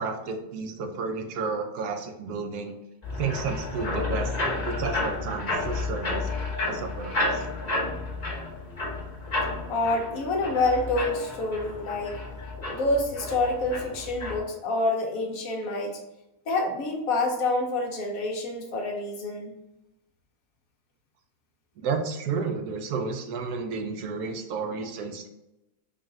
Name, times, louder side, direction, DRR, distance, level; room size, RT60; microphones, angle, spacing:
voice 1, 0.0-2.7 3.2-4.3 4.6-6.3 6.6-7.4 21.8-25.3, right 4 dB, 85° right, 4 dB, 1.2 m, -31 dB
sound 1, 3.0-14.4, left 2 dB, 30° left, 1.1 m, -31 dB
voice 2, 9.7-12.2 12.7-16.0 16.5-19.5, left 2 dB, 65° left, 1 dB, 1.1 m, -27 dB
3.9 x 2.4 x 3.7 m, 0.92 s
omnidirectional pair, 1.7 m